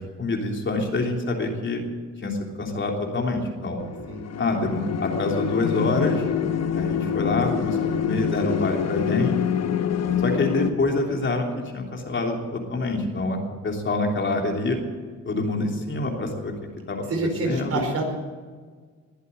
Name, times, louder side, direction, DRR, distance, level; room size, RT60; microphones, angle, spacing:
voice 1, 0.0-1.8 2.2-3.8 4.4-6.2 6.7-9.3 10.2-11.5 11.7-13.4 13.6-14.8 15.2-16.5 16.9-17.0 17.5-17.8, left 2 dB, 40° left, 1 dB, 3.2 m, -26 dB
sound 1, 3.8-10.7, left 8 dB, 55° left, 1.1 m, -26 dB
voice 2, 17.1-18.2, right 2 dB, 50° right, 3 dB, 4.5 m, -27 dB
20.5 x 8.2 x 8.2 m, 1.5 s
cardioid pair, 90°, 30 cm